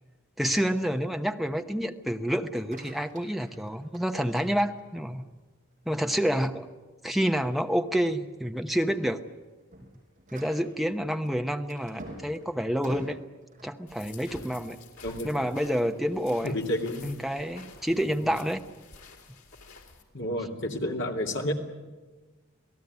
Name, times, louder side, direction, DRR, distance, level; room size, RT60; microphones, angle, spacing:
voice 1, 0.4-5.3 5.9-6.7 7.0-9.2 10.3-13.2 13.6-14.8 15.2-16.5 17.0-18.6, equal, ahead, 5 dB, 0.9 m, -28 dB
sound 1, 2.4-5.2 5.7-6.2 6.6-6.7 7.1-7.3 8.0-8.3 8.6-14.5, right 1 dB, 35° right, 6.2 m, -49 dB
sound 2, 13.9-20.0, left 4 dB, 90° left, 3.7 m, -50 dB
voice 2, 15.0-15.4 16.4-17.1 18.2-18.3 20.1-21.5, left 1 dB, 55° left, 2 dB, 2.8 m, -30 dB
27.5 x 17.5 x 9.5 m, 1.3 s
head